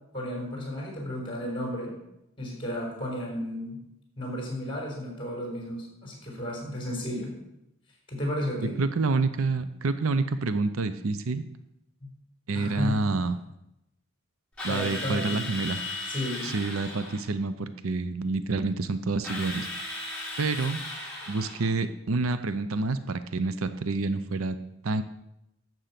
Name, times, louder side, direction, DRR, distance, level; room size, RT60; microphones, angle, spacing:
voice 1, 0.1-2.0 2.4-3.8 4.2-7.4 8.1-8.8 12.0-12.1 12.5-13.0 14.7-15.5 16.0-16.5, left 1 dB, 25° left, -1 dB, 4.1 m, -33 dB
voice 2, 8.6-11.5 12.5-13.4 14.6-15.8 16.4-19.7 20.4-20.8 21.3-24.6 24.8-25.0, right 3 dB, 80° right, 12 dB, 0.6 m, -28 dB
Drill, 14.6-17.3 19.2-21.7, left 2 dB, 5° left, 3.4 m, -36 dB
12.0 x 7.9 x 5.9 m, 0.84 s
head